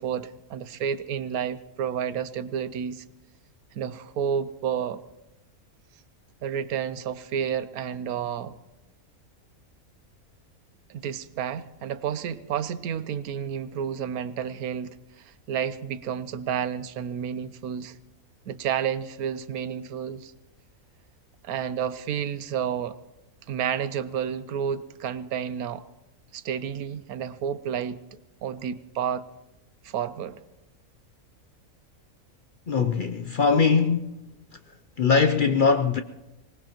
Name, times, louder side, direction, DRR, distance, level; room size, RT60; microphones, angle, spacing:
voice 1, 0.0-3.0 3.7-5.0 6.4-8.6 10.9-18.0 18.5-20.3 21.4-23.0 23.5-25.8 26.3-29.3 29.8-30.4, right 8 dB, 90° right, 1.2 m, -30 dB
voice 2, 32.7-34.2 35.0-36.0, left 5 dB, 50° left, 0.6 m, -21 dB
24.5 x 19.5 x 3.0 m
omnidirectional pair, 1.5 m